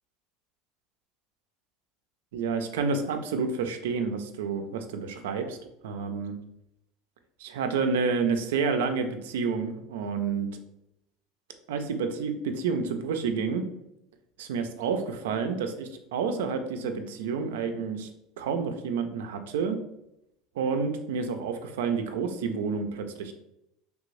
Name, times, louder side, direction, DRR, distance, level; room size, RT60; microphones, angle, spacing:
voice 1, 2.3-5.6 5.8-6.3 7.4-10.5 11.7-13.6 14.4-18.1 18.4-19.8 20.6-23.3, right 5 dB, 90° right, 7 dB, 0.4 m, -29 dB
3.2 x 2.5 x 3.1 m, 0.82 s
supercardioid pair, 110°, 0 cm